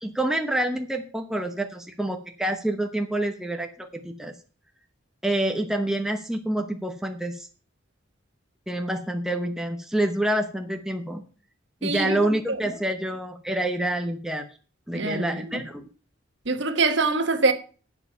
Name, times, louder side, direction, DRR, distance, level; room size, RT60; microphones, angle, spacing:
voice 1, 0.0-4.3 5.2-7.5 8.7-11.2 11.8-14.5 14.9-15.9, right 1 dB, 5° right, 0.9 m, -27 dB
voice 2, 11.8-12.6 14.9-15.6 16.4-17.5, right 3 dB, 65° right, 1.3 m, -25 dB
11.5 x 7.4 x 5.6 m
head